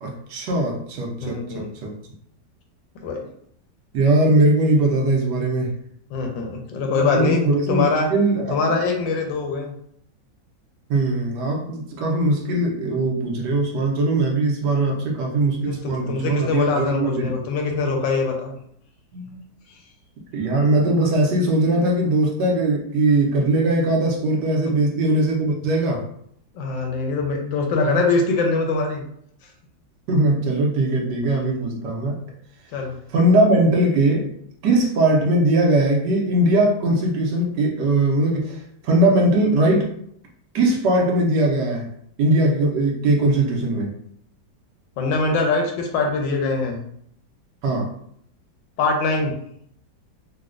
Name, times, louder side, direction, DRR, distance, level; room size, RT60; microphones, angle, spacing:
voice 1, 0.0-1.9 3.9-5.7 7.1-8.7 10.9-17.4 19.1-19.4 20.3-26.0 30.1-32.2 33.1-34.3 34.6-39.9 40.5-41.9 42.2-43.9 47.6-47.9, right 2 dB, 70° right, -1 dB, 1.2 m, -20 dB
voice 2, 1.2-1.7 3.0-3.2 6.1-7.4 7.7-8.1 8.5-9.7 15.5-18.5 26.5-29.0 32.7-33.0 45.0-46.8 48.8-49.3, left 3 dB, 85° left, 2 dB, 1.3 m, -23 dB
3.9 x 2.1 x 2.4 m, 0.68 s
omnidirectional pair, 2.0 m